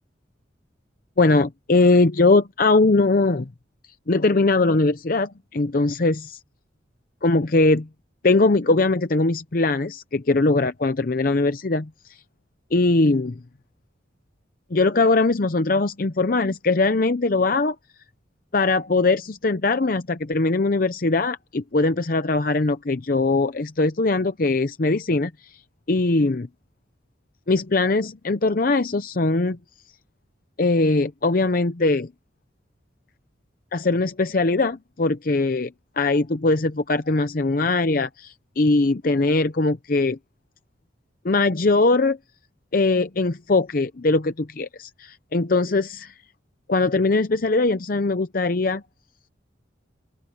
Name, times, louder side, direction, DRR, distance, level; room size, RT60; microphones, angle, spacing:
voice 1, 1.2-3.5 4.1-6.4 7.2-7.9 8.2-11.9 12.7-13.4 14.7-17.8 18.5-25.5 25.9-26.5 27.5-29.6 30.6-32.1 33.7-40.2 41.2-42.2 42.7-46.1 46.7-48.8, left 3 dB, 50° left, 0.7 m, -21 dB
open air
head